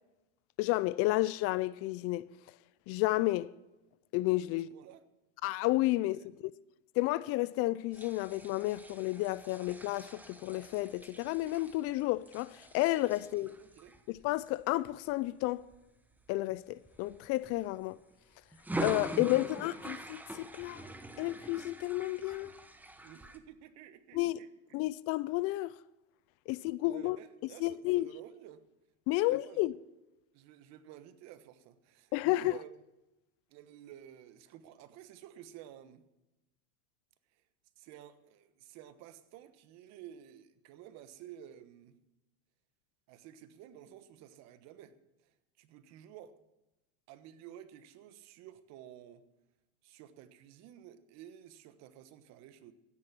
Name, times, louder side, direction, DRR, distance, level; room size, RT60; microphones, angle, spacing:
voice 1, 0.6-2.3 2.9-3.5 4.1-4.7 5.4-6.2 7.0-13.5 14.1-15.6 16.3-18.0 18.8-20.9 21.2-22.5 24.1-24.4 24.7-25.7 26.5-27.2 27.6-28.1 29.1-29.7 32.1-32.6, left 18 dB, 45° left, 0.4 m, -31 dB
voice 2, 4.5-5.0 6.1-6.3 13.2-14.0 19.3-19.5 23.0-24.8 26.8-28.7 29.1-29.6 30.3-32.7 33.5-36.1 37.3-37.4 37.8-42.0 43.1-44.9 45.2-46.4 47.1-49.3 49.8-52.7, right 11 dB, 50° right, 1.3 m, -52 dB
sound 1, 7.9-15.8 16.3-16.5 16.9-18.0 18.5-23.4, right 1 dB, 5° right, 1.0 m, -44 dB
14.0 x 9.9 x 6.0 m
supercardioid pair, 120°, 34 cm